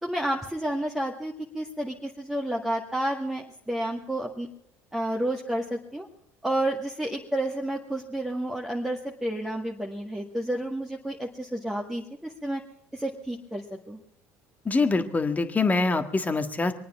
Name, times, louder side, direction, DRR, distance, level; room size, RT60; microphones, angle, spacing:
voice 1, 0.0-4.5 4.9-6.1 6.4-12.6 12.9-14.0, right 1 dB, 5° right, -2 dB, 1.9 m, -30 dB
voice 2, 14.7-16.7, left 3 dB, 20° left, 7 dB, 1.8 m, -24 dB
23.5 x 9.3 x 6.1 m, 0.73 s
hypercardioid pair, 75°, 7 cm